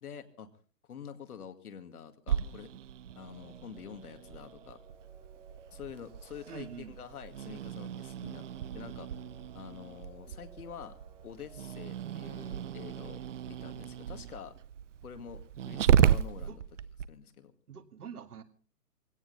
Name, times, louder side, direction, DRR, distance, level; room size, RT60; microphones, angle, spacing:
voice 1, 0.0-0.5 0.9-2.7 3.2-4.8 5.7-8.4 8.7-9.1 9.5-10.9 11.2-14.5 15.0-16.6 17.1-17.5, left 7 dB, 65° left, 8 dB, 2.2 m, -47 dB
Growling, 2.3-17.1, right 9 dB, 50° right, 0.7 m, -34 dB
sound 1, 3.1-13.2, right 3 dB, 10° right, 2.1 m, -59 dB
voice 2, 6.5-7.0 16.4-16.6 17.7-18.4, right 7 dB, 65° right, 8 dB, 2.2 m, -45 dB
19.5 x 17.0 x 4.0 m, 0.40 s
figure-of-eight pair, 135°, 48 cm